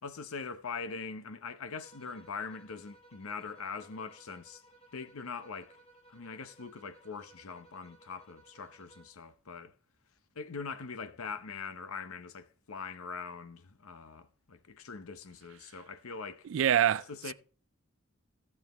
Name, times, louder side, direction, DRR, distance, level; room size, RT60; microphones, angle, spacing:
voice 1, 0.0-4.6 4.9-5.8 6.1-9.7 10.3-16.5 16.9-17.3, left 5 dB, 90° left, 0.8 m, -42 dB
sound 1, 1.8-9.3, right 2 dB, 30° left, 1.5 m, -60 dB
voice 2, 16.4-17.3, right 9 dB, 65° right, 0.3 m, -26 dB
15.5 x 7.3 x 3.0 m
head